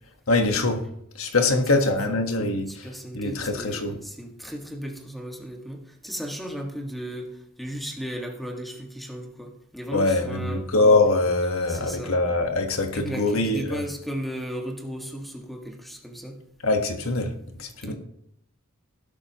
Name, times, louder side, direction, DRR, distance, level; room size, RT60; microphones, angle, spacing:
voice 1, 0.3-0.8 1.2-2.9 3.1-4.0 9.9-13.8 16.6-17.3 17.6-17.9, left 2 dB, 80° left, 1.5 m, -23 dB
voice 2, 2.7-10.6 11.7-12.2 12.9-16.4 17.8-17.9, equal, ahead, 1.9 m, -35 dB
16.0 x 12.0 x 3.1 m
head